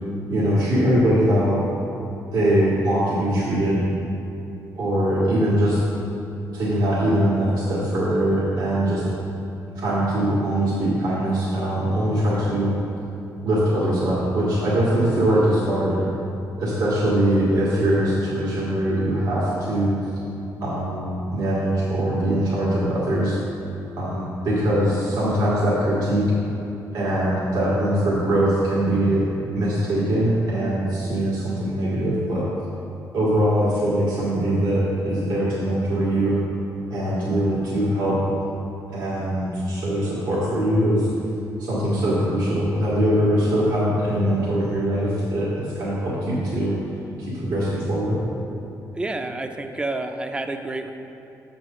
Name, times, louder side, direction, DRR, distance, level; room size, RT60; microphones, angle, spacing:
voice 1, 0.3-1.6 2.3-3.8 4.8-5.8 6.5-9.0 9.8-12.7 13.4-15.9 16.6-20.0 20.6-23.4 24.0-26.2 26.9-29.2 29.5-32.5 33.1-36.4 36.9-38.4 38.9-41.1 41.6-46.7 47.2-48.2, right 1 dB, 80° right, -9 dB, 1.8 m, -22 dB
voice 2, 48.9-50.9, right 2 dB, 15° right, 6 dB, 0.5 m, -29 dB
7.5 x 4.7 x 6.1 m, 2.9 s
cardioid pair, 120°, 7 cm